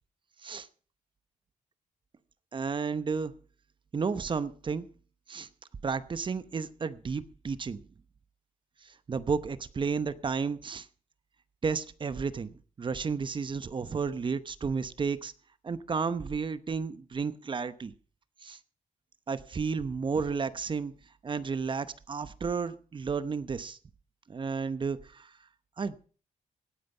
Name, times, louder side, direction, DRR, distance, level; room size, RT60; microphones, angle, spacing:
voice 1, 2.5-3.3 3.9-4.9 5.3-5.5 5.8-7.8 8.8-10.9 11.6-15.3 15.6-17.9 18.4-18.6 19.3-20.9 21.2-23.8 24.3-25.3 25.8-26.1, right 5 dB, 35° right, 14 dB, 0.9 m, -32 dB
17.0 x 9.3 x 5.5 m, 0.41 s
cardioid pair, 120°, 14 cm